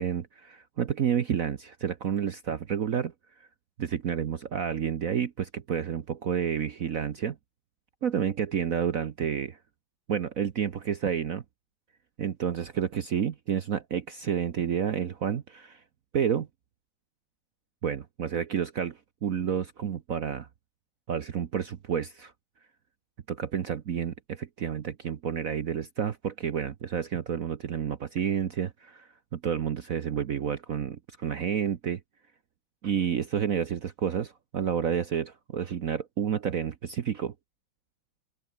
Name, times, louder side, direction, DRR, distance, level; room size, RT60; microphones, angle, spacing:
voice 1, 0.0-3.1 3.8-7.4 8.0-9.6 10.1-11.4 12.2-15.8 16.1-16.5 17.8-20.5 21.1-22.3 23.3-32.0 32.8-37.3, right 8 dB, 55° right, 1.2 m, -30 dB
open air
omnidirectional pair, 2.1 m